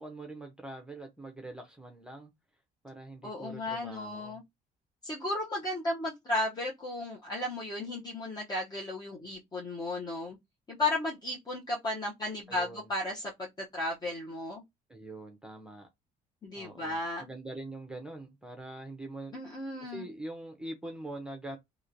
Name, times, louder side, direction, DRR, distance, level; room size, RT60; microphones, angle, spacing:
voice 1, 0.0-2.3 2.8-4.4 12.5-12.9 14.9-15.9 16.5-19.3 19.8-21.6, right 2 dB, 5° right, 0.7 m, -43 dB
voice 2, 3.2-4.4 5.0-10.4 10.7-14.6 16.4-17.3 19.3-20.0, left 2 dB, 25° left, 0.8 m, -34 dB
3.0 x 2.8 x 2.6 m
cardioid pair, 110°, 17 cm